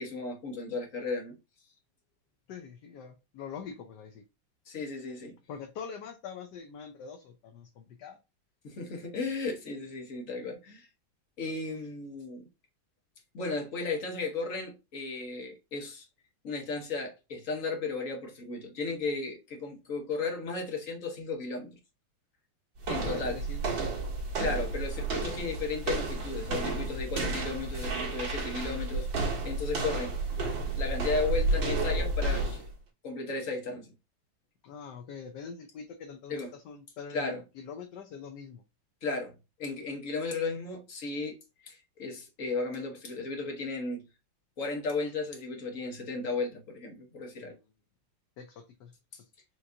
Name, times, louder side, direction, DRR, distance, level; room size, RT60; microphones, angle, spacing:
voice 1, 0.0-1.4 4.7-5.3 8.6-10.9 11.4-12.5 13.3-16.1 16.4-21.7 22.9-23.4 24.4-30.2 30.7-32.7 33.0-33.9 36.3-36.5 37.1-37.4 39.0-39.3 39.6-41.4 41.6-44.0 44.6-47.5, left 3 dB, 45° left, 1.6 m, -35 dB
voice 2, 2.5-4.2 5.5-8.2 23.0-24.0 34.6-38.6 47.4-47.6 48.4-48.9, left 6 dB, 70° left, 1.2 m, -44 dB
sound 1, 22.8-32.7, right 2 dB, 75° right, 2.2 m, -31 dB
5.1 x 3.1 x 2.7 m
omnidirectional pair, 2.1 m